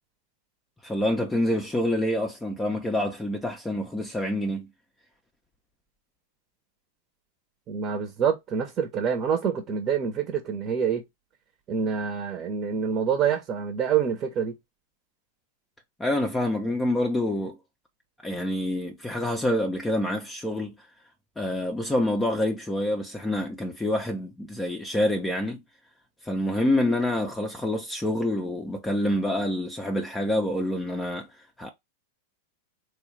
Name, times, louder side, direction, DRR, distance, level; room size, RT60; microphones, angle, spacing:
voice 1, 0.8-4.7 16.0-17.6 18.2-20.7 21.4-25.6 26.2-31.3 31.6-31.7, left 1 dB, 10° left, 0.7 m, -27 dB
voice 2, 7.7-11.0 11.7-14.5, right 7 dB, 35° right, 0.9 m, -26 dB
3.4 x 2.4 x 3.2 m
hypercardioid pair, 100°, 0 cm